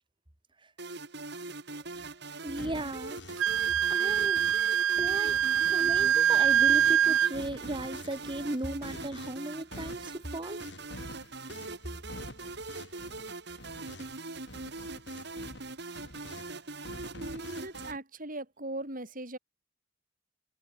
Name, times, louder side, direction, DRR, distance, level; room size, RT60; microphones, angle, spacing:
sound 1, 0.8-17.9, right 3 dB, 60° right, 3.6 m, -42 dB
voice 1, 2.4-3.2 3.9-4.4 5.0-5.4 5.7-10.6, right 1 dB, 25° right, 2.1 m, -36 dB
sound 2, 2.6-4.7 5.0-7.0 7.3-14.2 14.5-16.5 16.8-18.0, left 1 dB, 60° left, 7.3 m, -48 dB
Wind instrument woodwind instrument, 3.4-7.3, right 9 dB, 80° right, 0.5 m, -24 dB
voice 2, 17.1-19.4, right 1 dB, 45° right, 7.2 m, -39 dB
head